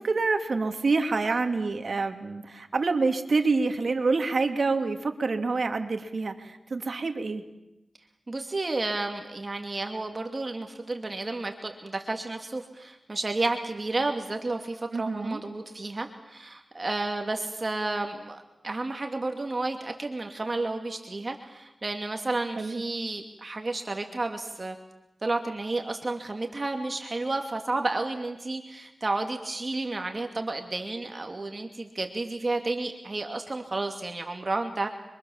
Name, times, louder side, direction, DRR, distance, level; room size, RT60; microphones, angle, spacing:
voice 1, 0.0-7.4 14.9-15.4 22.6-22.8, right 3 dB, 70° right, 6 dB, 2.7 m, -27 dB
voice 2, 8.3-24.7 25.2-34.9, right 2 dB, 45° right, 4 dB, 2.6 m, -31 dB
30.0 x 24.0 x 7.3 m, 0.94 s
cardioid pair, 55°, 0 cm